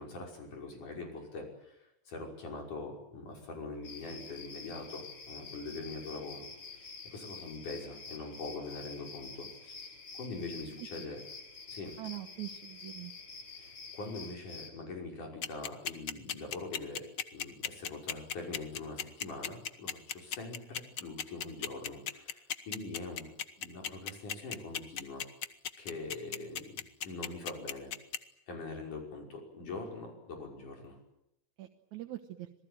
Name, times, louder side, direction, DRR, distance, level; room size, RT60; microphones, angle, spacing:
voice 1, 0.0-1.8 2.1-6.5 6.7-11.2 11.7-12.0 13.5-17.0 17.3-23.3 23.6-25.2 25.8-26.8 27.0-27.9 28.5-31.0, left 3 dB, 75° left, 2 dB, 7.2 m, -43 dB
sound 1, 3.8-14.7, left 5 dB, 45° left, 4.1 m, -48 dB
voice 2, 12.0-13.1 31.6-32.5, right 15 dB, 70° right, 5 dB, 2.6 m, -43 dB
sound 2, 15.4-28.2, left 8 dB, 60° left, 1.2 m, -35 dB
27.0 x 19.5 x 9.0 m, 0.82 s
omnidirectional pair, 3.6 m